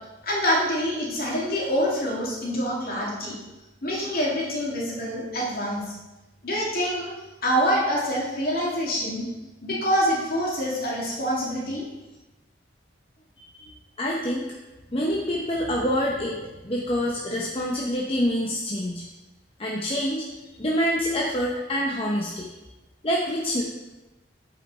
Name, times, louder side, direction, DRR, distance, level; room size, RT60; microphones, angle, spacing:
voice 1, 0.2-3.4 3.8-5.9 6.4-7.1 7.4-9.3 9.6-11.9, equal, 55° left, -4 dB, 2.3 m, -26 dB
voice 2, 13.5-14.5 14.9-19.0 19.6-20.3 20.6-22.5 23.0-23.6, equal, 30° left, -3 dB, 0.8 m, -26 dB
8.4 x 5.4 x 4.3 m, 1.1 s
head